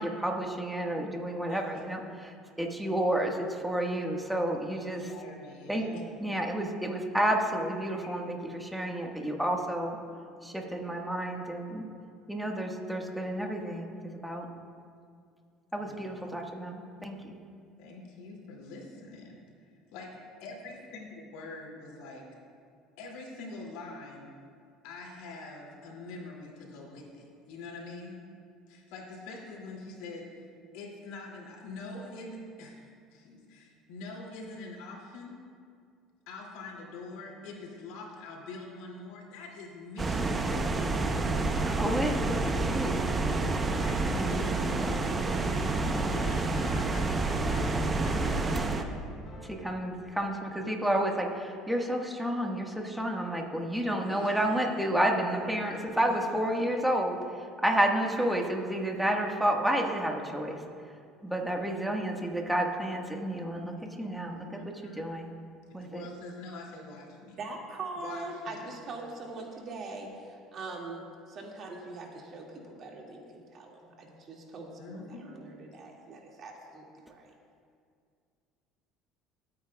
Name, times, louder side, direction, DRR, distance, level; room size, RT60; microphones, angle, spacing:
voice 1, 0.0-5.1 5.7-5.8 6.2-10.0 10.4-11.9 12.3-14.5 15.7-17.4 41.6-43.0 49.4-60.6 61.2-64.6 65.0-65.3 65.7-66.0, right 1 dB, 5° right, 1 dB, 1.5 m, -30 dB
voice 2, 1.4-1.8 4.7-6.2 15.8-16.3 17.8-19.4 19.9-20.1 20.4-22.2 23.0-24.3 24.8-28.2 28.7-30.5 30.7-35.4 36.3-41.4 43.8-44.7 46.0-48.7 54.0-54.8 55.1-55.3 55.6-56.7 58.1-58.3 64.2-65.1 65.8-67.4 68.0-68.6 74.8-75.4, left 3 dB, 80° left, -1 dB, 2.5 m, -45 dB
sound 1, 40.0-48.8, right 3 dB, 25° right, 0.8 m, -29 dB
sound 2, 43.5-50.0 51.5-51.6, left 1 dB, 40° left, 2.9 m, -45 dB
voice 3, 67.4-77.3, right 3 dB, 50° right, -1 dB, 2.1 m, -42 dB
23.5 x 8.8 x 2.3 m, 2.3 s
supercardioid pair, 90°, 0 cm